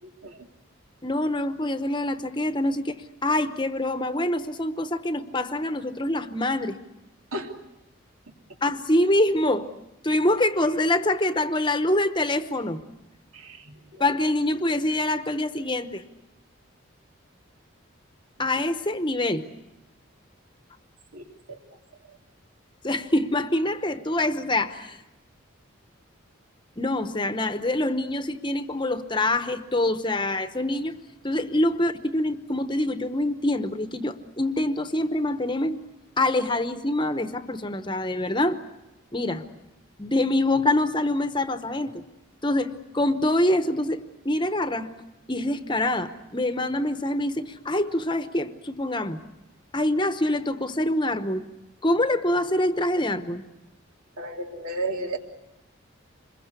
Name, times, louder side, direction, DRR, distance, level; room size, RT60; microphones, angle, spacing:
voice 1, 0.0-0.4 7.3-7.5 13.3-14.0 21.1-21.6 54.2-55.2, right 2 dB, 90° right, 3 dB, 3.0 m, -34 dB
voice 2, 1.0-3.0 3.2-6.8 8.6-9.7 10.0-12.8 14.0-16.0 18.4-19.4 22.8-25.0 26.8-31.0 31.2-35.8 36.2-38.6 39.1-39.4 40.0-42.0 42.4-44.9 45.3-49.2 49.7-51.4 51.8-53.4, left 1 dB, 20° left, 10 dB, 0.9 m, -25 dB
26.5 x 22.0 x 8.3 m, 0.95 s
head